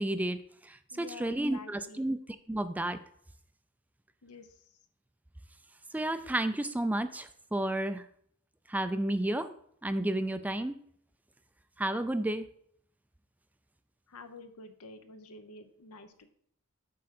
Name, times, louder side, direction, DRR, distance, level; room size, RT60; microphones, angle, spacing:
voice 1, 0.0-2.2 2.5-3.0 5.9-8.1 8.7-9.5 9.8-10.8 11.8-12.5, right 1 dB, 5° right, 10 dB, 0.3 m, -31 dB
voice 2, 0.9-2.1 4.2-4.6 14.1-16.3, left 3 dB, 80° left, 9 dB, 0.8 m, -49 dB
7.6 x 3.7 x 5.9 m, 0.65 s
head